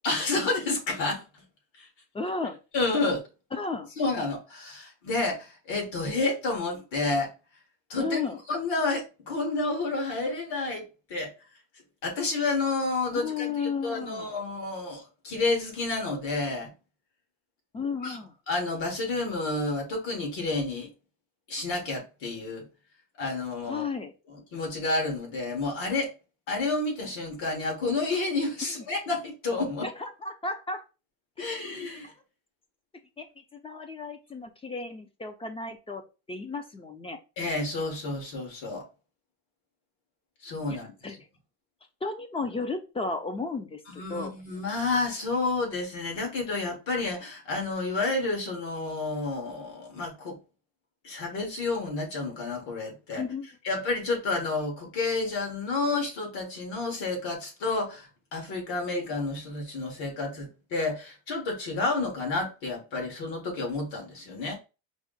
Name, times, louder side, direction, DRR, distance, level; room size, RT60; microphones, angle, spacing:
voice 1, 0.0-1.3 1.7-1.9 2.7-3.2 4.0-7.3 7.9-8.2 8.5-10.8 11.1-11.3 12.0-16.7 18.0-18.2 18.5-20.9 21.5-22.6 23.2-23.9 24.3-26.1 26.5-29.9 31.4-32.1 37.4-38.9 40.4-41.2 43.9-50.4 51.0-53.2 53.6-64.6, left 3 dB, 65° left, 1.9 m, -30 dB
voice 2, 2.1-2.6 3.5-3.9 8.0-8.4 13.1-14.3 17.7-18.3 23.7-24.1 28.8-28.9 29.8-30.8 31.4-31.5 33.2-33.3 33.5-36.0 36.3-37.2 41.0-41.1 42.0-44.3 53.2-53.5, left 4 dB, 15° left, 0.3 m, -33 dB
4.7 x 2.1 x 3.9 m
cardioid pair, 135°, 46 cm